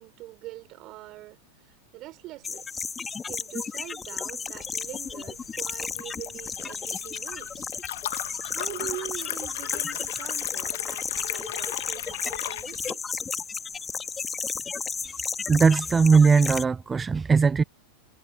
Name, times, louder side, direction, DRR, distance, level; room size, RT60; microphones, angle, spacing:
voice 1, 0.0-2.8 3.3-7.7 8.4-13.0, right 17 dB, 40° right, 5.4 m, -43 dB
sound 1, 2.4-16.6, left 5 dB, 20° left, 2.1 m, -33 dB
Liquid, 4.5-12.9, left 14 dB, 60° left, 1.6 m, -37 dB
voice 2, 15.5-17.6, right 5 dB, 15° right, 0.7 m, -19 dB
figure-of-eight pair, 90°, 0 cm